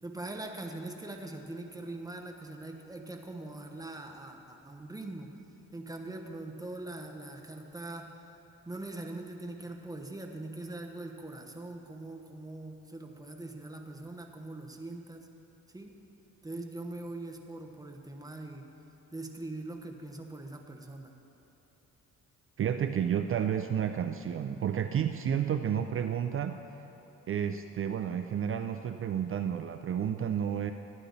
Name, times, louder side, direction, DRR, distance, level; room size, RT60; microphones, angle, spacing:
voice 1, 0.0-5.4 5.7-8.2 8.7-15.3 15.7-16.0 16.4-18.7 19.1-21.1, right 2 dB, 10° right, 3 dB, 0.9 m, -42 dB
voice 2, 22.6-26.6 27.3-30.7, right 8 dB, 45° right, 7 dB, 0.4 m, -31 dB
13.0 x 9.8 x 4.0 m, 3.0 s
cardioid pair, 115°, 31 cm